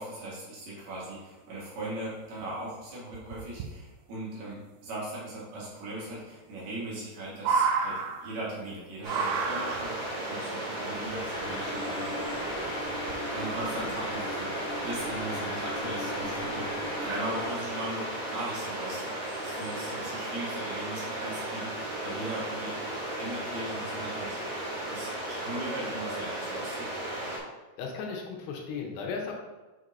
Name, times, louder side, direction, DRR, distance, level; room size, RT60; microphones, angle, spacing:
voice 1, 0.0-12.2 13.2-22.8 23.1-26.9, right 1 dB, 65° right, -6 dB, 3.0 m, -39 dB
sound 1, 2.1-2.2 2.4-2.7 3.1-3.7 5.3-5.4 5.6-5.7 6.2-6.3 6.6-8.7 9.1-10.2 11.0-11.7 12.4-12.5 13.0-13.4 13.8-14.0, right 5 dB, 80° right, 2.7 m, -31 dB
sound 2, 9.0-27.4, right 1 dB, 50° right, 2.2 m, -35 dB
sound 3, 11.3-17.5, left 1 dB, 40° left, 1.8 m, -37 dB
voice 2, 27.8-29.3, left 5 dB, 85° left, 0 dB, 3.1 m, -35 dB
6.7 x 6.2 x 2.7 m, 1.2 s
omnidirectional pair, 5.5 m